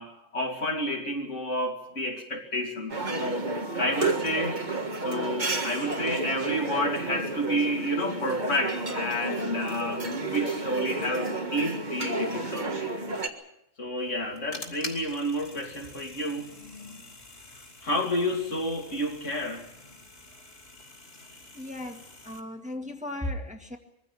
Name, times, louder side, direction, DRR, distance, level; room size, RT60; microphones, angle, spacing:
voice 1, 0.0-3.5 3.8-4.7 5.0-12.9 13.8-16.5 17.8-19.7, equal, 70° left, 1 dB, 3.3 m, -30 dB
sound 1, 2.9-13.3, right 2 dB, 35° right, 1.8 m, -31 dB
sound 2, 14.0-22.4, left 2 dB, 50° left, 3.2 m, -46 dB
voice 2, 21.5-23.8, left 1 dB, 5° right, 3 dB, 1.8 m, -36 dB
22.5 x 15.5 x 8.8 m, 0.82 s
omnidirectional pair, 1.3 m